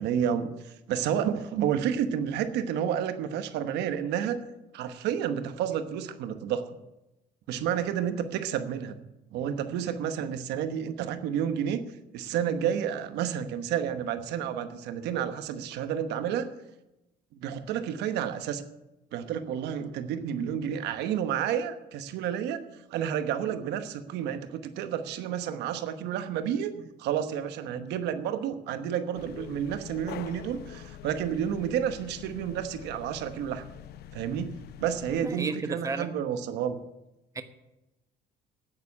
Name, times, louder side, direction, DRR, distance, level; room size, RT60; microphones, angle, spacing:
voice 1, 0.0-4.4 4.7-6.7 7.5-9.0 9.3-11.8 12.1-16.5 17.4-18.6 19.1-22.6 22.9-33.6 34.1-36.8, right 9 dB, 85° right, 10 dB, 1.1 m, -30 dB
sound 1, 29.1-35.2, left 11 dB, 70° left, 0.7 m, -45 dB
voice 2, 35.2-36.1 37.3-37.4, right 3 dB, 20° right, 9 dB, 1.1 m, -33 dB
9.7 x 9.5 x 9.7 m, 0.94 s
cardioid pair, 110°, 17 cm